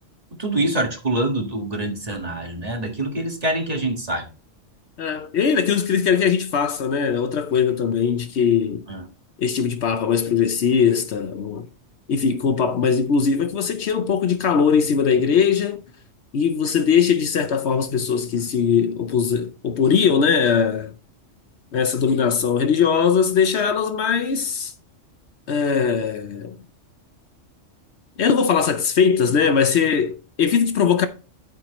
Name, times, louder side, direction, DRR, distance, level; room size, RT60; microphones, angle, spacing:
voice 1, 0.4-4.3 8.9-9.0, right 1 dB, 30° right, 1.9 m, -25 dB
voice 2, 5.0-8.8 9.4-11.7 12.1-15.8 16.3-20.9 21.7-24.7 25.5-26.6 28.2-31.1, left 6 dB, 65° left, 0.9 m, -20 dB
12.5 x 4.6 x 3.0 m
omnidirectional pair, 1.3 m